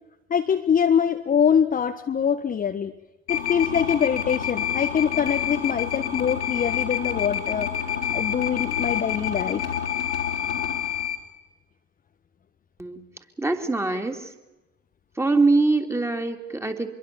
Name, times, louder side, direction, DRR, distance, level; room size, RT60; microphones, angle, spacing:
voice 1, 0.3-2.9 3.3-7.7 8.1-9.6, left 7 dB, 25° left, 5 dB, 1.4 m, -23 dB
sound 1, 3.3-11.2, left 9 dB, 80° left, 3.8 m, -28 dB
voice 2, 13.4-14.3 15.2-16.9, right 3 dB, 10° right, 5 dB, 3.2 m, -23 dB
26.5 x 23.0 x 7.2 m, 0.99 s
figure-of-eight pair, 75°, 34 cm